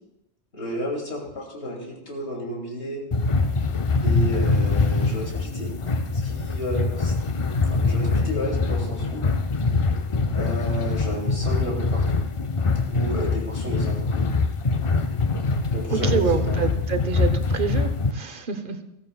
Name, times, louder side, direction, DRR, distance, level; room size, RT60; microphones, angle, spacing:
voice 1, 0.5-3.0 4.0-5.7 6.2-7.1 7.7-9.3 10.3-12.2 12.9-14.3 15.7-16.6, equal, 75° left, -2 dB, 3.0 m, -32 dB
sound 1, 3.1-18.1, left 3 dB, 40° left, 0.4 m, -23 dB
voice 2, 15.9-18.8, right 7 dB, 50° right, 9 dB, 1.0 m, -27 dB
15.0 x 14.5 x 2.3 m, 0.87 s
omnidirectional pair, 1.1 m